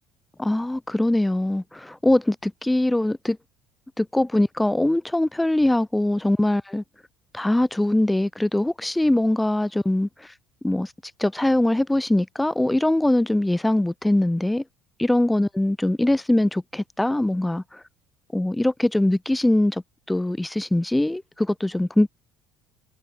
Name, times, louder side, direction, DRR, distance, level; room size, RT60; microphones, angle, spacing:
voice 1, 0.4-3.4 4.0-6.8 7.3-10.3 10.6-10.9 11.2-14.6 15.0-17.8 18.3-22.1, left 1 dB, 10° left, 0.9 m, -22 dB
hypercardioid pair, 65°, 0 cm